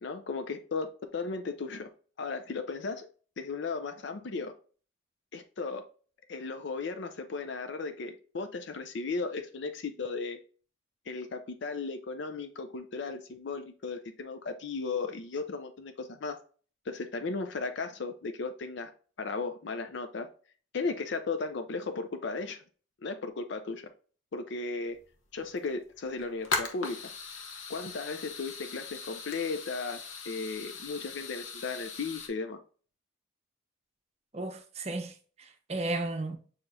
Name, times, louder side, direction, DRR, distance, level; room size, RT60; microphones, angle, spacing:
voice 1, 0.0-1.9 2.2-3.1 3.4-4.5 5.3-5.9 6.3-10.4 11.1-16.4 16.9-18.9 19.2-20.3 20.7-22.6 23.0-23.9 24.3-25.0 25.3-27.1 27.7-30.0 30.3-32.6, left 4 dB, 60° left, 0.4 m, -35 dB
sound 1, 25.0-25.1 25.4-25.7 26.1-32.3, left 4 dB, 75° left, 0.9 m, -39 dB
voice 2, 34.3-36.4, right 2 dB, 30° right, 0.7 m, -34 dB
6.5 x 2.9 x 2.6 m
head